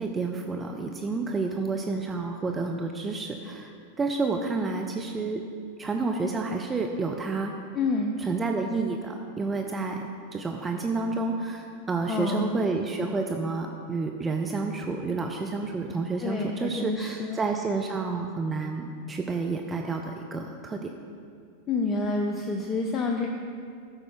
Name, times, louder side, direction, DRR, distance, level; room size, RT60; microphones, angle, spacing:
voice 1, 0.0-3.7 4.0-5.4 5.8-7.5 8.2-10.0 10.3-20.9, right 3 dB, 15° right, 2 dB, 0.6 m, -30 dB
voice 2, 7.7-8.2 12.1-12.6 16.2-17.4 21.7-23.3, left 3 dB, 25° left, 2 dB, 0.7 m, -28 dB
13.0 x 5.1 x 5.8 m, 2.3 s
figure-of-eight pair, 90°, 0 cm